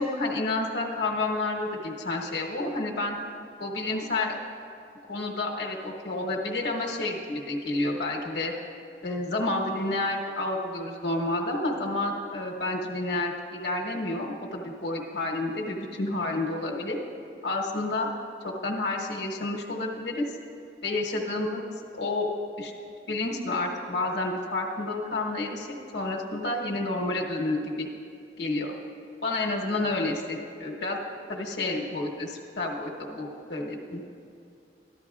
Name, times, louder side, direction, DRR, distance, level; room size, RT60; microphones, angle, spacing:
voice 1, 0.0-3.2 3.6-4.4 5.1-8.5 9.0-17.0 17.4-18.1 18.4-20.2 20.8-21.6 21.9-22.3 22.6-22.7 23.1-27.9 28.4-28.7 29.2-31.0 31.3-34.0, left 2 dB, 75° left, -1 dB, 1.1 m, -30 dB
14.5 x 11.5 x 2.4 m, 2.4 s
head